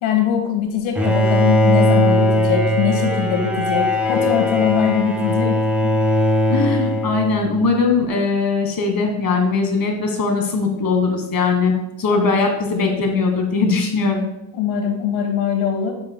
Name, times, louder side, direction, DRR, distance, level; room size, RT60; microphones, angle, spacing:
voice 1, 0.0-6.0 12.1-12.2 14.5-15.9, left 8 dB, 80° left, 3 dB, 1.6 m, -22 dB
Bowed string instrument, 0.9-7.7, equal, 5° right, 1.2 m, -19 dB
voice 2, 6.5-14.3, left 4 dB, 45° left, 3 dB, 1.6 m, -20 dB
7.1 x 6.8 x 2.2 m, 0.89 s
supercardioid pair, 90°, 47 cm